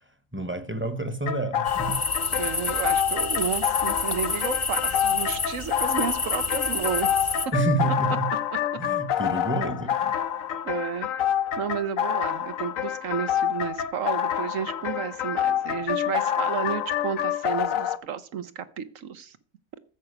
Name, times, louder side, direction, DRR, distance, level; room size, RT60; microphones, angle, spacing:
voice 1, 0.3-2.1 7.5-8.3 8.8-10.2, right 3 dB, 10° right, 0.9 m, -28 dB
sound 1, 1.3-18.0, left 10 dB, 80° left, 1.2 m, -27 dB
sound 2, 1.7-7.5, left 4 dB, 30° left, 0.7 m, -29 dB
voice 2, 2.4-7.3 10.6-11.1 11.6-19.4, right 7 dB, 75° right, 1.3 m, -32 dB
14.0 x 5.8 x 8.1 m
omnidirectional pair, 1.4 m